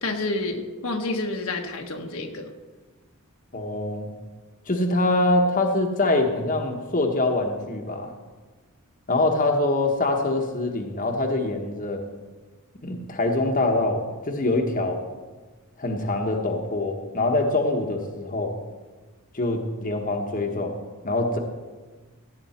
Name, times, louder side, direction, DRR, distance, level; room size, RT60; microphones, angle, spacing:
voice 1, 0.0-2.5, left 2 dB, 70° left, 3 dB, 1.2 m, -29 dB
voice 2, 3.5-4.1 4.7-8.1 9.1-12.0 12.8-15.0 15.8-18.5 19.3-20.7 21.0-21.4, left 2 dB, 40° left, 3 dB, 1.1 m, -24 dB
16.5 x 8.9 x 4.3 m, 1.3 s
head